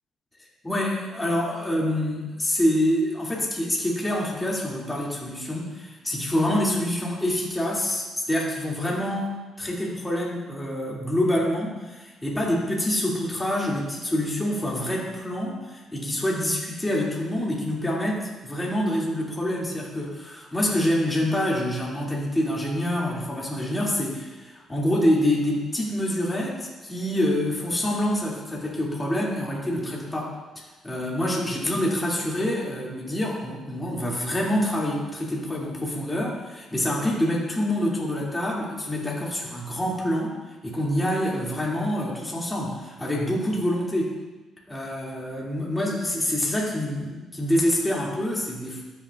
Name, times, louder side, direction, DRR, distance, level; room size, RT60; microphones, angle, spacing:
voice 1, 0.6-30.3 30.8-40.4 40.6-44.1 44.7-48.8, left 1 dB, 15° left, -4 dB, 2.4 m, -26 dB
13.0 x 7.2 x 2.4 m, 1.2 s
cardioid pair, 90°, 0 cm